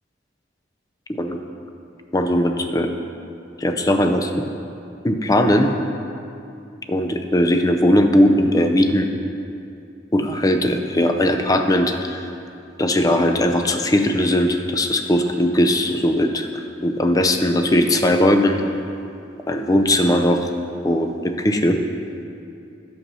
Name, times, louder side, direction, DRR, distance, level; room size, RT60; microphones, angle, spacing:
voice 1, 2.1-2.9 3.6-4.3 5.0-5.7 6.9-9.1 10.1-12.3 12.8-16.5 16.8-18.6 19.5-20.5 20.8-21.8, left 1 dB, 20° left, 6 dB, 0.5 m, -19 dB
8.9 x 6.9 x 5.5 m, 2.6 s
head